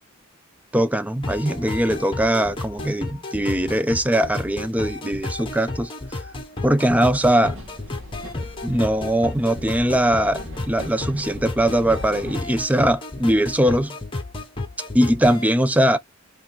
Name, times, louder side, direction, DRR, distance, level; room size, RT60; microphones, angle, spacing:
voice 1, 0.7-5.9 6.6-7.6 8.6-14.0 14.9-16.0, right 1 dB, 5° right, 0.4 m, -21 dB
sound 1, 1.2-15.4, left 2 dB, 25° left, 1.0 m, -32 dB
sound 2, 7.4-12.4, equal, 65° right, 1.8 m, -39 dB
3.8 x 3.2 x 4.4 m
head